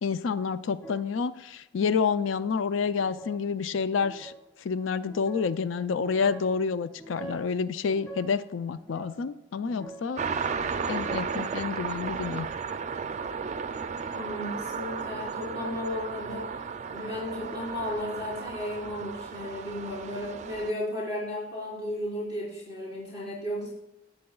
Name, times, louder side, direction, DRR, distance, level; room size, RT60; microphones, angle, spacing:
voice 1, 0.0-4.3 4.6-10.2 10.8-12.5, left 5 dB, 85° left, 13 dB, 0.4 m, -29 dB
sound 1, 0.8-1.2 1.8-2.2 2.9-3.4 3.9-4.4 5.0-5.5 6.0-6.5 6.9-7.5 7.9-8.4 8.8-10.2 10.6-11.4, right 2 dB, 20° left, 2.8 m, -45 dB
sound 2, 10.2-20.7, right 5 dB, 40° right, 0.4 m, -34 dB
voice 2, 14.1-16.6 16.9-23.7, left 1 dB, 60° left, -7 dB, 4.2 m, -34 dB
19.0 x 7.6 x 2.3 m, 0.92 s
head